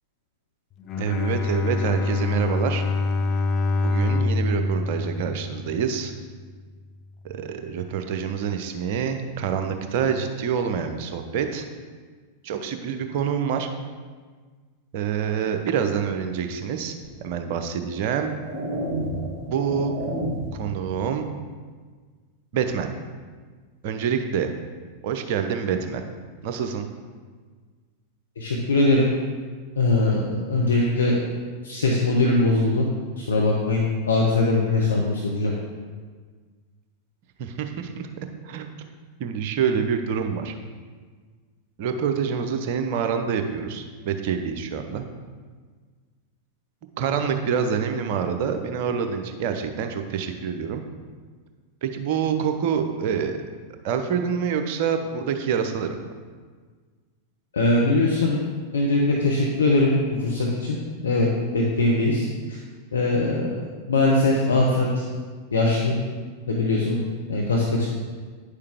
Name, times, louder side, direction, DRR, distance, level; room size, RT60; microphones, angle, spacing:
Bowed string instrument, 0.8-6.1, left 3 dB, 35° left, 0.6 m, -25 dB
voice 1, 1.0-2.8 3.8-6.1 7.2-11.6 12.4-13.7 14.9-16.9 17.2-18.3 19.5-19.9 20.5-21.3 22.5-22.9 23.8-24.5 25.0-26.0 26.4-26.9 37.4-38.1 38.4-38.7 39.2-40.6 41.8-45.0 47.0-50.8 51.8-53.4 53.8-56.0, right 7 dB, 50° right, 6 dB, 0.7 m, -26 dB
sound 1, 17.0-17.2 17.9-20.7, right 1 dB, 15° right, 1.7 m, -31 dB
voice 2, 28.4-29.1 29.8-31.1 31.6-32.8 33.2-35.5 57.5-58.4 58.7-59.9 60.2-60.8 61.0-61.3 61.5-62.6 62.9-63.6 63.9-64.9 65.5-65.9 66.5-67.0 67.3-67.9, left 2 dB, 70° left, -2 dB, 0.9 m, -21 dB
9.5 x 6.6 x 3.5 m, 1.5 s
figure-of-eight pair, 90°, 0 cm